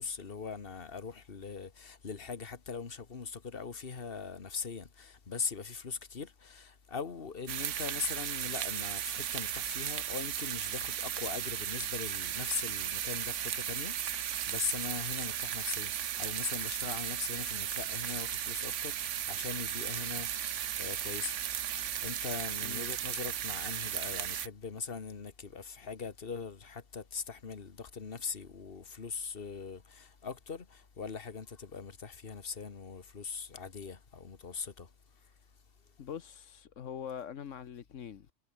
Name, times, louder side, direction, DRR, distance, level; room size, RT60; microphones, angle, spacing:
voice 1, 0.0-34.9, left 5 dB, 50° left, 1.8 m, -41 dB
sound 1, 7.5-24.5, right 10 dB, 80° right, 1.2 m, -35 dB
voice 2, 36.0-38.3, left 8 dB, 85° left, 1.4 m, -43 dB
omnidirectional pair, 1.3 m